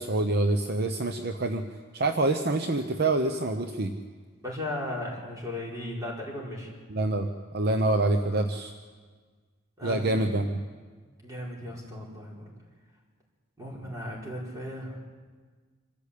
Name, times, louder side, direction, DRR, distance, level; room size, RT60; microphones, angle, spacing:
voice 1, 0.0-1.6 1.9-3.9 6.9-7.3 7.5-8.7 9.8-10.5, right 2 dB, 50° right, 6 dB, 0.9 m, -26 dB
voice 2, 4.4-6.7 9.8-10.2 11.2-12.5 13.6-15.0, left 1 dB, 15° right, -3 dB, 5.0 m, -36 dB
25.5 x 13.5 x 8.5 m, 1.5 s
head